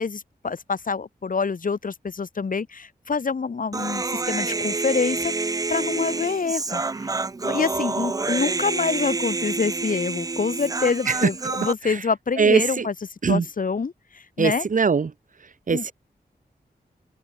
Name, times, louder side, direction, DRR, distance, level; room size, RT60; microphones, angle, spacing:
voice 1, 0.0-7.1 7.4-12.9 13.3-14.7 15.7-15.9, left 5 dB, 55° left, 1.2 m, -26 dB
Human voice, 3.7-11.7, right 3 dB, 20° right, 0.4 m, -28 dB
voice 2, 12.4-12.8 13.2-13.4 14.4-15.1 15.7-15.9, right 5 dB, 50° right, 0.8 m, -20 dB
cardioid pair, 55°, 17 cm